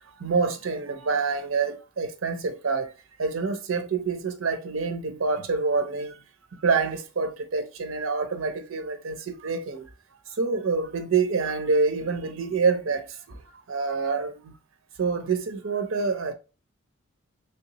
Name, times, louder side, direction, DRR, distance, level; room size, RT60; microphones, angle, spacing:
voice 1, 0.2-2.9 3.2-6.1 6.6-9.8 10.4-13.0 13.7-14.4 15.0-16.3, right 4 dB, 80° right, 0.6 m, -26 dB
3.4 x 2.8 x 2.8 m
head